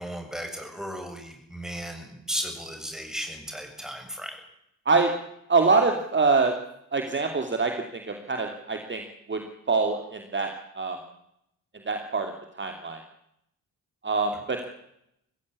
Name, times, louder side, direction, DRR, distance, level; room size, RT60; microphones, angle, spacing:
voice 1, 0.0-4.4, equal, ahead, 4 dB, 7.3 m, -35 dB
voice 2, 5.5-6.5 6.9-9.0 9.3-9.4 9.7-11.0 11.9-13.0 14.0-14.6, right 4 dB, 25° right, 4 dB, 2.8 m, -25 dB
25.0 x 16.0 x 8.5 m, 0.78 s
figure-of-eight pair, 40°, 44 cm